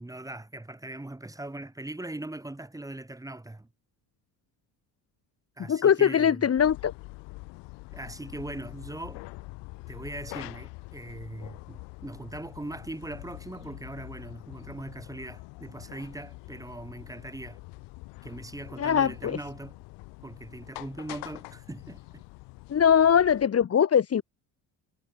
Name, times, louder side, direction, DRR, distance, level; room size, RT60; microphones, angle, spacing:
voice 1, 0.0-3.7 5.6-6.5 7.9-9.2 9.9-17.6 18.2-19.8 20.2-22.2, right 2 dB, 10° right, 7.7 m, -40 dB
voice 2, 5.7-6.9 18.8-19.4 22.7-24.2, left 8 dB, 35° left, 2.3 m, -21 dB
sound 1, 6.6-23.5, left 25 dB, 85° left, 4.4 m, -45 dB
cardioid pair, 120°, 41 cm